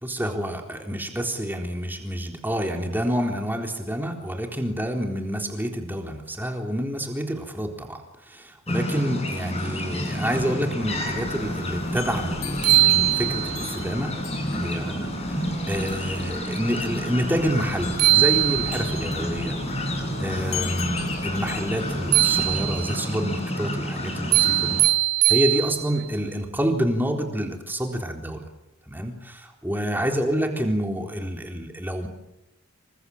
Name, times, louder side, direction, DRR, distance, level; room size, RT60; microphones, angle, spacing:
voice 1, 0.0-14.1 14.5-19.6 20.2-24.8 25.3-28.4 28.9-32.1, equal, 10° right, 2 dB, 3.9 m, -28 dB
sound 1, 8.7-24.8, left 1 dB, 30° left, 7.5 m, -30 dB
sound 2, 10.8-22.9, left 5 dB, 70° left, 5.0 m, -40 dB
sound 3, 12.2-12.3 12.6-13.7 17.6-17.7 18.0-19.1 22.1-23.0 24.3-26.1, right 19 dB, 45° right, 3.6 m, -21 dB
28.0 x 25.5 x 7.3 m, 0.88 s
head